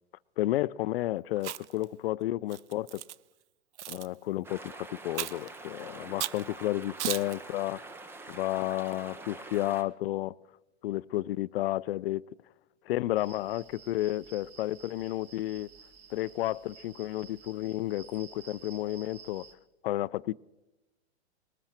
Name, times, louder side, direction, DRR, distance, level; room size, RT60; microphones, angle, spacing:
voice 1, 0.4-3.0 3.9-7.8 8.3-10.3 10.8-12.2 12.9-15.7 16.1-19.5 19.8-20.3, left 15 dB, 55° left, 20 dB, 0.5 m, -32 dB
Chewing mastication, 1.4-1.8 2.5-3.2 3.8-4.1 5.2-5.5 6.2-6.4 7.0-7.4, right 13 dB, 75° right, 0.5 m, -35 dB
sound 1, 4.4-9.8, right 2 dB, 5° right, 0.6 m, -45 dB
sound 2, 13.2-19.5, right 7 dB, 30° right, 1.5 m, -53 dB
20.5 x 13.0 x 4.4 m, 1.0 s
hypercardioid pair, 135°, 35 cm